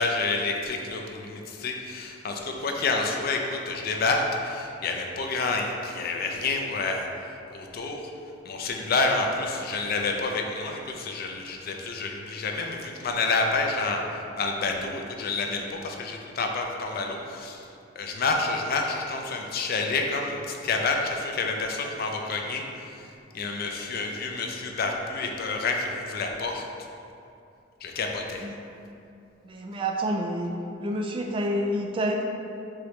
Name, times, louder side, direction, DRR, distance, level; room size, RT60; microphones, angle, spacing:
voice 1, 0.0-7.1 7.5-8.0 8.5-14.0 14.4-17.6 18.0-22.6 23.3-26.6 27.8-28.5, left 3 dB, 50° left, 2 dB, 0.4 m, -28 dB
voice 2, 29.4-30.5 30.8-32.2, equal, 25° right, 1 dB, 0.3 m, -28 dB
4.7 x 3.0 x 3.0 m, 2.6 s
head